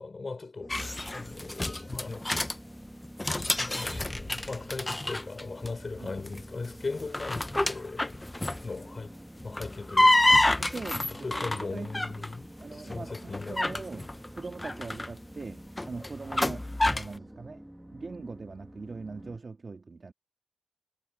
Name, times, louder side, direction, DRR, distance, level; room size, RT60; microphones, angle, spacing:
voice 1, 0.0-2.3 3.6-8.2 8.6-10.7 11.0-13.9, left 3 dB, 45° left, 5.6 m, -39 dB
sound 1, 0.6-19.4, right 1 dB, 10° right, 2.1 m, -48 dB
sound 2, 0.7-2.6 3.0-5.7 6.0-6.4 6.9-8.8 9.4-12.3 12.9-17.2, left 1 dB, 20° left, 0.7 m, -28 dB
voice 2, 10.6-12.3 12.6-14.1 14.4-17.6 17.9-20.1, right 4 dB, 45° right, 2.4 m, -41 dB
wide cardioid pair, 85°, 0 cm